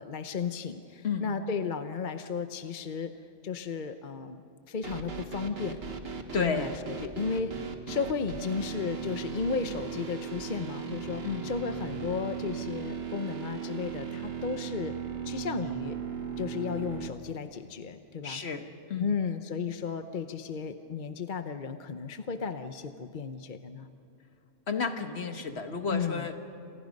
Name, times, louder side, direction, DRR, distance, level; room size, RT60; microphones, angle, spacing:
voice 1, 0.0-3.1 3.4-4.4 4.7-5.8 6.3-7.5 7.9-14.9 15.2-16.0 16.4-18.4 19.0-23.9 25.9-26.3, left 5 dB, 45° left, 8 dB, 0.9 m, -34 dB
sound 1, 4.8-17.1, right 7 dB, 55° right, 1.7 m, -37 dB
voice 2, 6.3-6.7 11.2-11.5 18.2-19.2 24.7-26.3, left 5 dB, 60° left, 6 dB, 1.7 m, -32 dB
28.5 x 27.5 x 5.3 m, 2.5 s
omnidirectional pair, 1.2 m